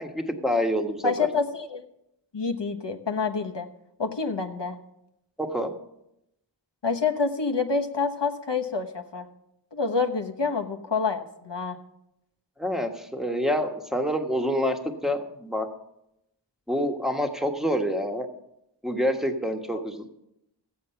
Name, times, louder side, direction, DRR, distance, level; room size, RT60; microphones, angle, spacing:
voice 1, 0.0-1.3 5.4-5.7 12.6-15.7 16.7-18.3 18.8-20.2, equal, ahead, 4 dB, 1.4 m, -27 dB
voice 2, 1.0-1.8 2.3-3.7 4.0-4.8 6.8-9.3 9.7-11.8, left 4 dB, 65° left, 5 dB, 1.2 m, -27 dB
14.0 x 8.6 x 5.7 m, 0.84 s
wide cardioid pair, 45°, 46 cm